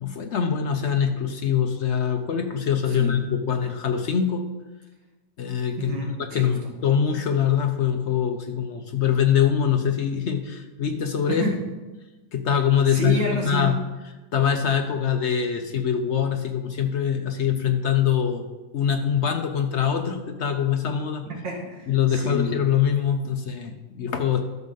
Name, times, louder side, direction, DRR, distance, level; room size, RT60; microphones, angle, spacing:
voice 1, 0.0-4.4 5.4-5.9 6.3-11.4 12.3-13.8 14.3-18.5 18.7-21.2 21.9-24.5, left 8 dB, 60° left, 5 dB, 0.7 m, -23 dB
voice 2, 5.8-6.7 11.3-11.6 12.9-13.7 21.3-22.6, equal, 80° right, 0 dB, 2.3 m, -29 dB
12.5 x 6.3 x 4.0 m, 1.2 s
omnidirectional pair, 1.9 m